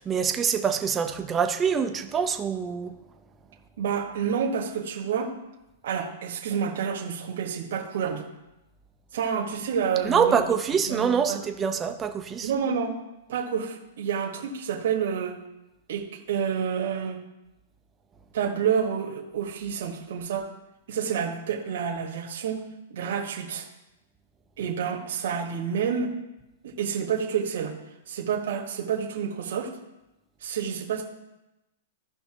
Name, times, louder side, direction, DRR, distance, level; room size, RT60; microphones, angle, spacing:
voice 1, 0.0-3.0 10.0-12.5, right 6 dB, 15° right, 6 dB, 0.7 m, -25 dB
voice 2, 3.8-5.3 5.8-8.2 9.1-10.5 10.9-11.4 12.4-13.0 13.3-15.4 15.9-17.2 18.3-20.5 20.9-23.7 24.6-26.1 26.6-27.8 28.1-29.7 30.4-31.0, right 7 dB, 70° right, 0 dB, 1.5 m, -29 dB
15.0 x 5.5 x 3.0 m, 0.96 s
hypercardioid pair, 150°, 0 cm